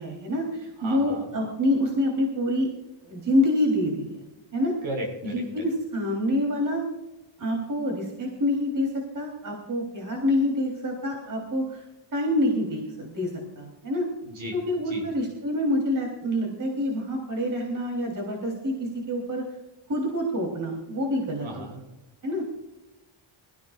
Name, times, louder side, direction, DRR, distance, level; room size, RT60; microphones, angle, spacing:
voice 1, 0.0-2.7 3.0-4.2 4.5-4.7 5.2-6.8 7.4-11.8 12.1-13.3 13.6-14.1 14.5-19.5 19.9-21.7 22.2-22.4, left 1 dB, 40° right, 0 dB, 3.6 m, -27 dB
voice 2, 0.8-1.3 4.8-5.4 14.2-14.6 14.9-15.0 21.4-21.8, right 1 dB, 70° right, 1 dB, 5.8 m, -35 dB
22.5 x 15.0 x 2.5 m, 0.96 s
wide cardioid pair, 115°, 49 cm